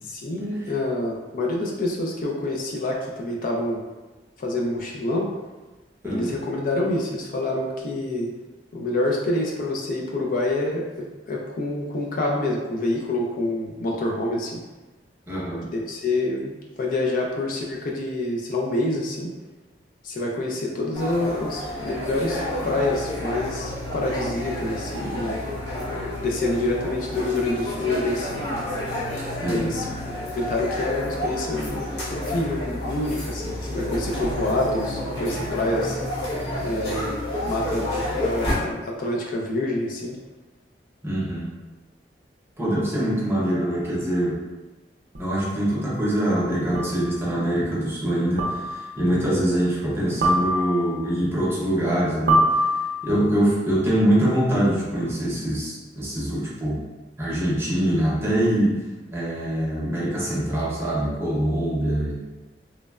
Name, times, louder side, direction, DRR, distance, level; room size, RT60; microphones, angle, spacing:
voice 1, 0.1-3.8 4.4-5.3 6.0-8.3 8.7-14.6 15.7-19.3 20.0-25.4 26.2-28.4 29.5-29.9 30.3-31.8 32.1-36.0 36.6-40.2, left 2 dB, 50° left, -1 dB, 0.4 m, -27 dB
voice 2, 15.3-15.7 29.4-29.7 41.0-41.5 42.6-44.4 45.2-52.6 53.0-56.8 57.2-58.8 59.1-62.2, right 1 dB, 15° right, -7 dB, 0.7 m, -24 dB
sound 1, 20.9-38.6, left 1 dB, 75° left, 0.9 m, -30 dB
sound 2, 45.1-45.2 46.7-47.1 48.4-48.9 50.2-51.0 52.3-53.2, right 1 dB, 65° right, 0.5 m, -23 dB
3.1 x 2.1 x 2.3 m, 1.2 s
head